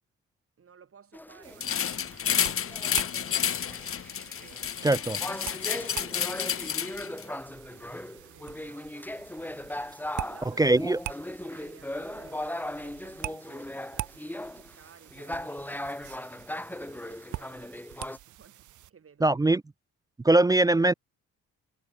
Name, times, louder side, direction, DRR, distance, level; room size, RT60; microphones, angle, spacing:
voice 1, 0.6-3.7 4.3-5.0 5.4-9.1 10.2-10.6 11.2-15.9 16.5-19.4, right 7 dB, 45° right, 7.6 m, -56 dB
sound 1, 1.1-18.2, left 1 dB, 5° left, 2.6 m, -38 dB
sound 2, 1.4-18.9, right 15 dB, 75° right, 1.1 m, -45 dB
sound 3, 1.6-7.2, left 8 dB, 45° left, 1.3 m, -30 dB
voice 2, 4.8-5.2 10.5-11.0 19.2-19.6 20.2-20.9, right 2 dB, 10° right, 0.4 m, -21 dB
cardioid pair, 90°, 30 cm